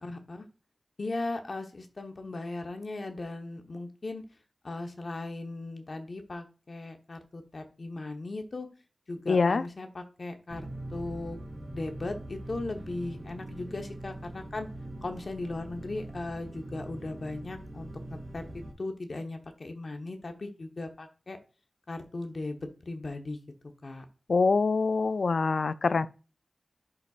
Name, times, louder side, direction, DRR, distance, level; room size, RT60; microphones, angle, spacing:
voice 1, 0.0-0.5 1.0-4.2 4.6-8.7 9.1-11.4 11.7-14.7 15.0-21.4 21.9-23.4 23.8-24.0, left 2 dB, 65° left, 1.1 m, -38 dB
voice 2, 9.3-9.6 24.3-26.1, left 4 dB, 80° left, 0.4 m, -24 dB
sound 1, 10.5-18.7, right 1 dB, 60° right, 2.9 m, -42 dB
11.0 x 4.1 x 2.4 m
cardioid pair, 40°, 0 cm